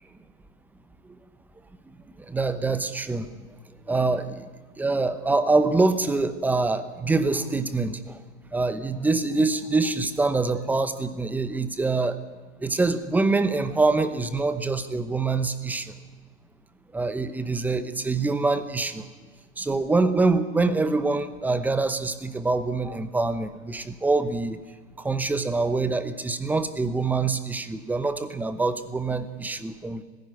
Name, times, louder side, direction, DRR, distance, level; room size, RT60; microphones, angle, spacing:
voice 1, 2.3-3.3 3.9-4.5 4.8-8.2 8.5-12.2 12.6-15.9 16.9-19.0 19.6-24.6 25.0-30.0, right 3 dB, 5° right, 12 dB, 0.8 m, -25 dB
19.0 x 16.0 x 9.4 m, 1.4 s
hypercardioid pair, 135°, 37 cm